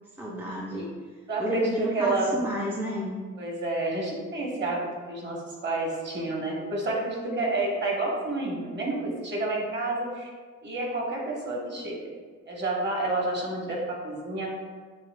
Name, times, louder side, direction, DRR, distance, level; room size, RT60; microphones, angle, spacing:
voice 1, 0.2-0.9 1.4-3.2, equal, 5° right, -3 dB, 0.4 m, -31 dB
voice 2, 1.3-2.4 3.3-10.3 10.6-12.0 12.5-14.5, right 2 dB, 35° right, -2 dB, 1.1 m, -29 dB
6.4 x 2.2 x 2.2 m, 1.5 s
cardioid pair, 90°, 30 cm